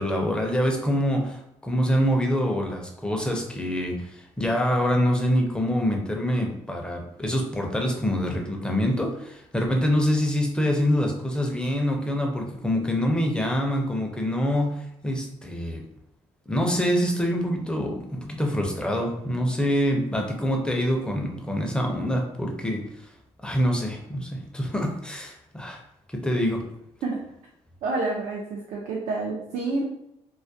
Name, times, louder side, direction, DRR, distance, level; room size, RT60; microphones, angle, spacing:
voice 1, 0.0-15.8 16.5-23.1 23.4-25.8 26.1-26.6, equal, 5° left, 1 dB, 0.4 m, -25 dB
voice 2, 27.8-29.8, right 3 dB, 65° right, -2 dB, 0.4 m, -28 dB
2.3 x 2.0 x 2.6 m, 0.82 s
cardioid pair, 105°, 13 cm